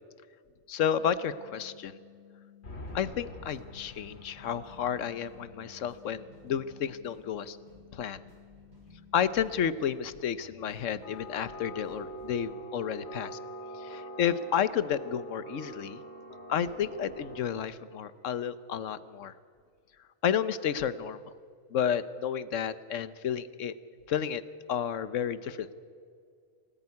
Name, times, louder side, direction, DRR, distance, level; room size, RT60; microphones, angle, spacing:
voice 1, 0.7-2.0 2.9-7.6 7.9-8.2 9.1-13.4 13.8-16.0 16.5-19.3 20.2-21.2 21.7-23.7 24.1-24.4 24.7-25.7, left 8 dB, 65° left, 15 dB, 1.2 m, -31 dB
sound 1, 1.0-9.8, left 11 dB, 25° left, 4.4 m, -56 dB
sound 2, 2.6-5.5 11.0-17.4, right 1 dB, 50° left, 2.8 m, -44 dB
sound 3, 2.9-12.4, equal, 30° right, 5.9 m, -57 dB
24.5 x 18.5 x 9.7 m, 2.2 s
omnidirectional pair, 1.5 m